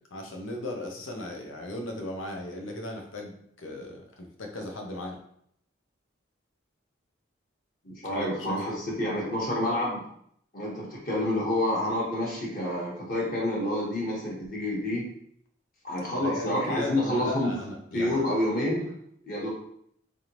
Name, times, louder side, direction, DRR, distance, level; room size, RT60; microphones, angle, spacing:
voice 1, 0.1-5.2 8.0-8.8 16.2-18.2, left 1 dB, 85° left, 2 dB, 0.8 m, -37 dB
voice 2, 7.8-10.1 10.5-15.0 15.8-17.5 17.9-18.9 19.2-19.5, left 1 dB, 45° left, -4 dB, 1.3 m, -28 dB
3.8 x 3.4 x 2.9 m, 0.69 s
head